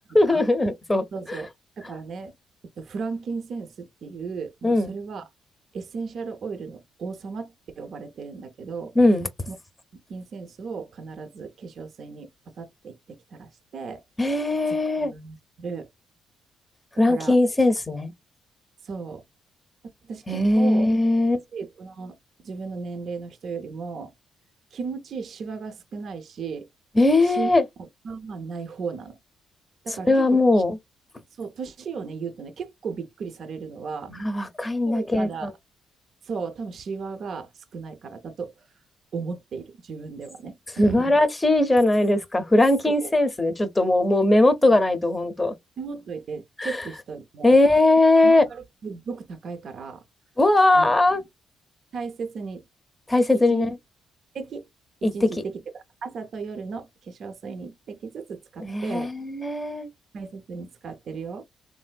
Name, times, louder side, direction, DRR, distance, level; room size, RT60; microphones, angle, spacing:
voice 1, 0.1-1.0 4.6-4.9 9.0-9.3 14.2-15.1 17.0-18.1 20.3-21.4 26.9-27.6 30.1-30.8 34.1-35.5 40.8-45.5 46.6-46.8 47.4-48.4 50.4-51.2 53.1-53.7 55.0-55.3 58.6-59.9, left 2 dB, 15° left, 0.7 m, -20 dB
voice 2, 1.1-1.5 1.8-2.3 2.8-5.3 5.7-8.9 9.5-9.6 9.9-12.3 12.6-14.0 14.7-14.8 15.0-15.9 17.1-17.4 18.8-19.2 19.8-20.9 21.5-22.2 22.4-24.1 24.7-26.7 27.2-27.5 27.8-29.2 29.8-30.6 31.4-34.1 34.9-35.5 36.2-38.5 39.1-41.1 42.8-43.1 45.8-47.6 48.2-50.0 50.7-51.2 51.9-52.6 53.5-53.7 54.3-54.6 55.1-59.1 60.1-61.4, right 5 dB, 60° right, 0.5 m, -35 dB
3.2 x 2.6 x 2.2 m
cardioid pair, 90°, 0 cm